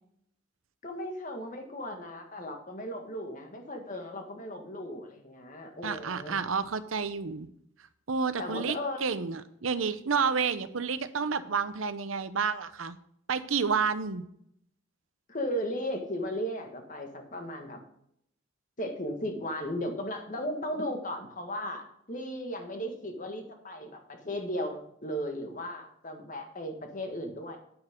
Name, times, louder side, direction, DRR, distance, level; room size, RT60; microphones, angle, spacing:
voice 1, 0.8-6.4 8.4-9.1 15.3-17.8 18.8-27.6, equal, 40° left, 4 dB, 1.6 m, -36 dB
voice 2, 5.8-7.5 8.1-13.0 13.3-14.2, right 5 dB, 85° right, 13 dB, 0.7 m, -30 dB
9.7 x 9.0 x 3.7 m, 0.71 s
head